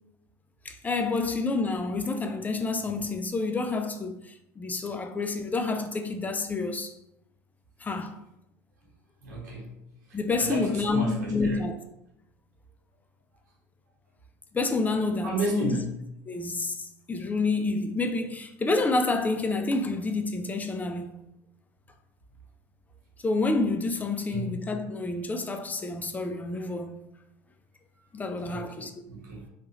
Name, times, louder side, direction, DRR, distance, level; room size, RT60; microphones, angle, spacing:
voice 1, 0.6-6.9 7.8-8.1 10.1-11.8 14.5-15.8 16.3-21.2 23.2-27.0 28.1-28.9, left 3 dB, 15° left, 0.4 m, -28 dB
voice 2, 9.2-9.7 10.4-11.6 15.2-15.9 24.3-24.5 28.4-29.4, right 1 dB, 85° right, 1.0 m, -33 dB
2.9 x 2.3 x 3.0 m
hypercardioid pair, 80°, 9 cm